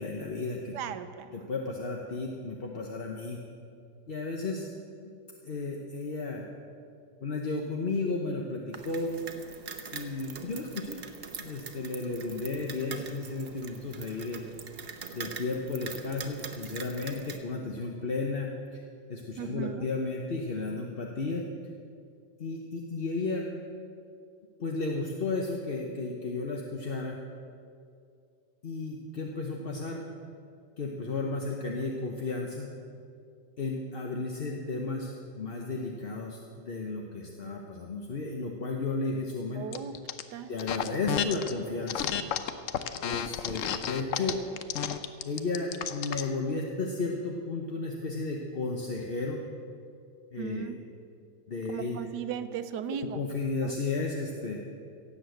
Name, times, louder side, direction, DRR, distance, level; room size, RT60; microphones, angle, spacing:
voice 1, 0.0-0.8 1.3-3.4 4.1-4.7 5.0-5.2 5.4-6.4 7.2-9.1 9.9-11.0 11.4-14.4 15.1-18.8 19.1-21.4 22.4-23.4 24.6-27.2 28.6-30.0 30.8-32.7 33.6-39.6 40.5-42.1 43.0-44.4 45.2-49.4 50.3-50.7 51.5-52.1 53.2-54.6, left 3 dB, 40° left, 1 dB, 1.0 m, -33 dB
voice 2, 0.7-1.3 19.4-19.9 39.5-39.9 40.3-40.5 50.4-50.8 51.7-53.2 53.6-53.7, right 8 dB, 75° right, 11 dB, 1.3 m, -37 dB
sound 1, 8.7-17.4, right 5 dB, 45° right, 0.9 m, -43 dB
sound 2, 39.7-40.2 40.6-41.5 41.9-46.3, left 9 dB, 65° left, 0.8 m, -32 dB
17.0 x 7.7 x 7.8 m, 2.4 s
omnidirectional pair, 1.9 m